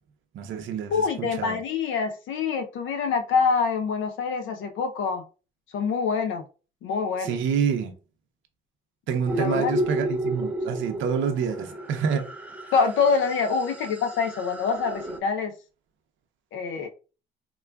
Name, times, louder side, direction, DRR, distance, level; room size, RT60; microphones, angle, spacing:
voice 1, 0.3-1.6 7.2-7.9 9.1-12.3, right 7 dB, 75° right, 0.6 m, -27 dB
voice 2, 0.9-5.2 5.7-6.4 6.8-7.4 9.3-9.7 12.7-15.5 16.5-16.9, left 5 dB, 75° left, 0.5 m, -25 dB
sound 1, 9.3-15.2, equal, 5° right, 0.4 m, -32 dB
3.6 x 2.3 x 2.2 m
cardioid pair, 90°, 20 cm